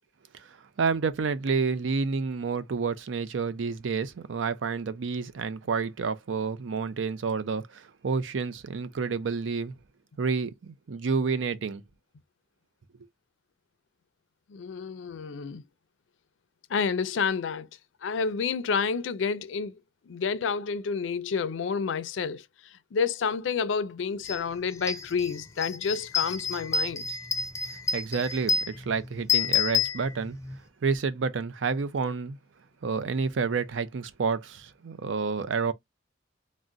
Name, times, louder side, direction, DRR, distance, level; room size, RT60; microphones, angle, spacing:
voice 1, 0.3-9.8 10.2-11.8 27.9-30.4 30.8-32.4 32.8-35.7, right 5 dB, 85° right, 0.5 m, -29 dB
voice 2, 14.5-15.6 16.7-17.7 18.0-19.8 20.1-22.4 22.9-27.1, left 5 dB, 80° left, 0.4 m, -29 dB
sound 1, 24.2-24.4 24.7-30.6, left 6 dB, 15° left, 0.5 m, -29 dB
3.7 x 2.1 x 2.4 m
head